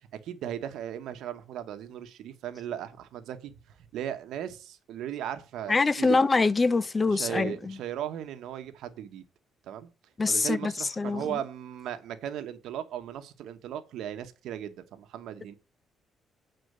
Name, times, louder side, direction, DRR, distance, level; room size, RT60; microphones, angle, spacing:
voice 1, 0.1-6.2 7.1-9.3 9.6-9.9 10.3-15.5, right 10 dB, 85° right, 1.0 m, -37 dB
voice 2, 5.7-7.8 10.2-11.4, left 3 dB, 30° left, 0.6 m, -25 dB
8.0 x 4.3 x 6.6 m
cardioid pair, 95°, 0 cm